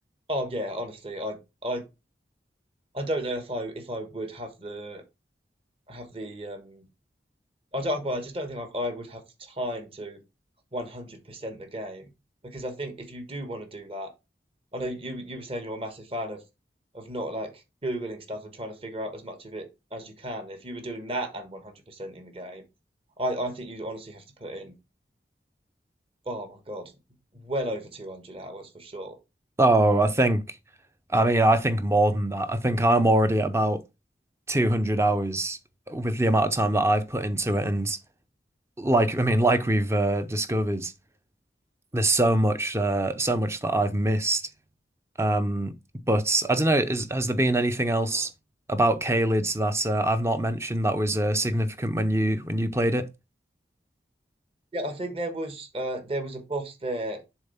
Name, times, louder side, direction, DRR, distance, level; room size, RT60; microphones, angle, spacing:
voice 1, 0.3-1.8 2.9-5.0 5.9-6.9 7.7-10.2 10.7-12.1 12.4-14.1 14.7-16.4 16.9-22.6 23.2-24.7 26.2-26.9 27.3-29.2 54.7-57.2, equal, 30° right, 1.3 m, -34 dB
voice 2, 29.6-30.4 31.1-33.8 34.5-35.6 35.9-38.0 38.8-40.9 41.9-44.5 45.2-45.7 46.1-48.3 48.7-53.1, right 1 dB, 15° right, 0.5 m, -23 dB
7.1 x 3.5 x 5.6 m
head